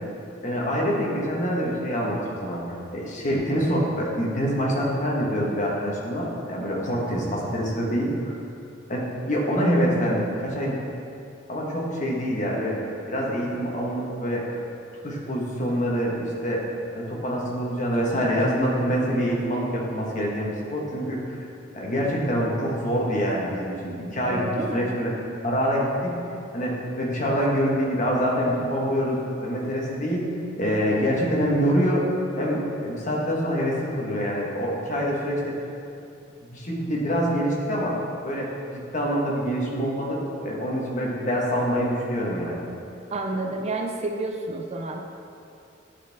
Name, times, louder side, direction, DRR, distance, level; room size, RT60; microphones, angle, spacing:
voice 1, 0.4-2.6 2.9-8.3 8.9-10.8 11.5-14.4 15.0-16.7 16.9-21.4 21.7-25.1 25.4-26.1 26.5-30.2 30.6-32.1 32.4-35.5 36.5-37.9 38.2-42.6, equal, 40° left, -3 dB, 1.3 m, -25 dB
voice 2, 6.6-7.0 24.3-24.9 43.1-45.1, right 2 dB, 35° right, 3 dB, 0.4 m, -30 dB
11.0 x 4.4 x 3.5 m, 2.6 s
head